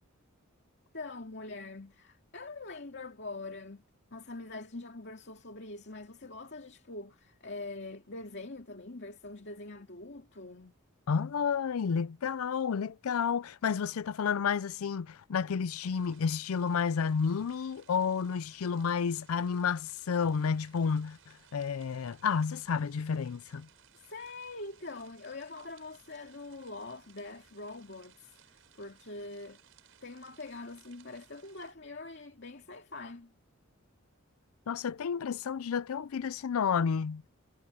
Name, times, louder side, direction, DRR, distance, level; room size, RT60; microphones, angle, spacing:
voice 1, 0.9-3.8 4.1-10.8 23.9-28.4 28.7-29.6 30.0-33.3, left 2 dB, 50° left, 2.5 m, -44 dB
voice 2, 11.1-23.7 34.7-37.2, left 6 dB, 80° left, 0.4 m, -31 dB
sound 1, 15.7-31.7, right 9 dB, 65° right, 6.2 m, -62 dB
head